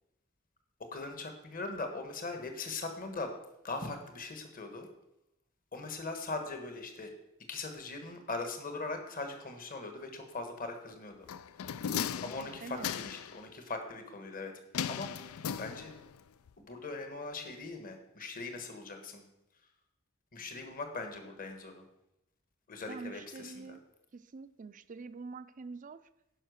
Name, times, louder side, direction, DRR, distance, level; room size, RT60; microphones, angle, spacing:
voice 1, 0.9-3.3 3.6-4.9 5.7-7.1 7.5-11.3 12.2-14.5 14.9-15.9 16.6-19.2 20.3-21.8 22.7-23.8, left 3 dB, 45° left, 5 dB, 1.3 m, -40 dB
sound 1, 11.3-13.4 14.7-16.2 16.5-16.6, left 8 dB, 90° left, 0.4 m, -37 dB
voice 2, 12.6-12.9 22.9-23.8 24.1-26.0, right 4 dB, 40° right, 13 dB, 0.4 m, -45 dB
9.9 x 5.6 x 6.4 m, 0.86 s
head